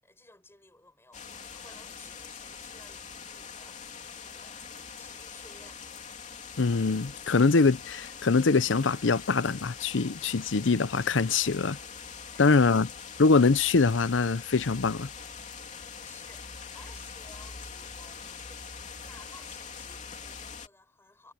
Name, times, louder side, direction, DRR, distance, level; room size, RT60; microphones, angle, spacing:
voice 1, 0.0-6.0 12.3-12.7 15.7-21.3, left 2 dB, 15° left, 7.5 m, -56 dB
sound 1, 1.1-20.7, left 6 dB, 40° left, 3.1 m, -43 dB
voice 2, 6.6-11.8 12.4-12.9 13.2-15.1, left 4 dB, 85° left, 0.7 m, -23 dB
head